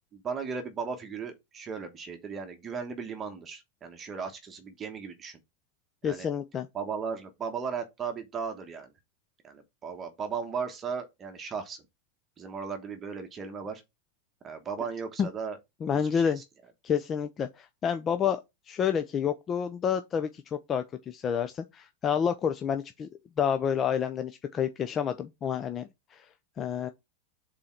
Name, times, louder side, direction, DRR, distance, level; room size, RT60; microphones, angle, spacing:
voice 1, 0.1-5.4 6.0-6.3 6.7-8.9 9.4-11.8 12.4-13.8 14.4-15.6 15.9-16.4, right 6 dB, 20° right, 1.1 m, -36 dB
voice 2, 6.0-6.7 15.2-15.3 15.8-16.4 16.8-18.4 18.7-23.1 23.4-26.3 26.6-26.9, left 7 dB, 25° left, 0.5 m, -29 dB
5.3 x 4.2 x 5.8 m
supercardioid pair, 145°, 0 cm